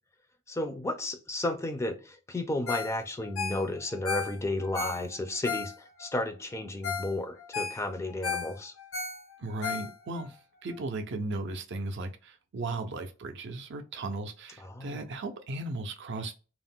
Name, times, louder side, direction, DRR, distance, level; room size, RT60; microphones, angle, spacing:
voice 1, 0.5-8.7 14.6-15.0, left 1 dB, 15° left, 0.3 m, -33 dB
Ringtone, 2.7-3.0 3.2-6.1 6.5-6.6 6.8-7.1 7.4-10.3 10.7-10.8, left 5 dB, 75° left, 0.6 m, -35 dB
voice 2, 9.4-16.3, right 2 dB, 65° right, 0.5 m, -36 dB
2.4 x 2.0 x 3.5 m
head